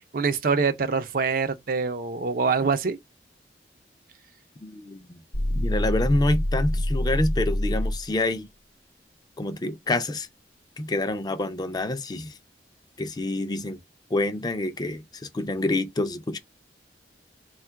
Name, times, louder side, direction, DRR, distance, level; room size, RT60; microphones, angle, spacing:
voice 1, 0.1-3.0, right 5 dB, 50° right, 0.5 m, -25 dB
voice 2, 4.6-5.2 5.5-8.5 9.4-10.3 10.8-12.3 13.0-13.8 14.1-16.4, left 2 dB, 25° left, 0.5 m, -27 dB
sound 1, 5.3-8.1, left 1 dB, 60° left, 0.8 m, -26 dB
3.6 x 2.3 x 4.4 m
head